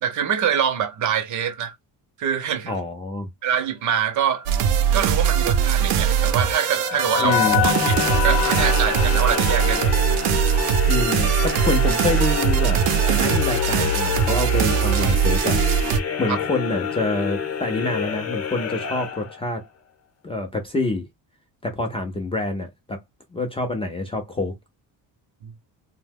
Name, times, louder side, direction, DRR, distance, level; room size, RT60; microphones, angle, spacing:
voice 1, 0.0-1.8 2.2-2.7 3.4-4.5 4.9-7.4 7.6-8.0 8.2-9.9 25.4-25.5, right 8 dB, 45° right, 0.6 m, -24 dB
voice 2, 2.7-3.3 7.2-7.6 10.9-12.8 13.1-15.9 16.2-19.6 20.2-21.0 21.6-23.0 23.3-24.5, left 2 dB, 15° left, 0.4 m, -26 dB
sound 1, 4.5-16.0, right 8 dB, 85° right, 0.7 m, -21 dB
sound 2, 5.6-10.9, left 13 dB, 70° left, 0.6 m, -27 dB
sound 3, 7.4-19.7, left 7 dB, 35° left, 0.7 m, -29 dB
2.7 x 2.1 x 3.4 m
cardioid pair, 150°, 41 cm